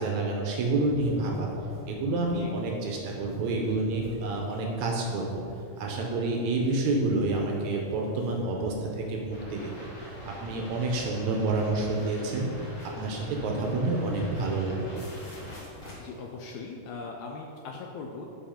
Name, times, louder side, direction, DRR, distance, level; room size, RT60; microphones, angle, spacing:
voice 1, 0.0-1.5 1.9-5.4 5.8-9.9 10.2-12.5 12.8-15.1, right 2 dB, 75° right, 0 dB, 1.8 m, -28 dB
sound 1, 0.8-16.4, left 1 dB, 45° left, 0.7 m, -49 dB
sound 2, 9.3-15.6, right 1 dB, 60° left, 2.5 m, -45 dB
voice 2, 16.0-18.3, left 4 dB, 80° left, 0 dB, 1.7 m, -40 dB
5.6 x 5.2 x 5.0 m, 2.7 s
omnidirectional pair, 3.7 m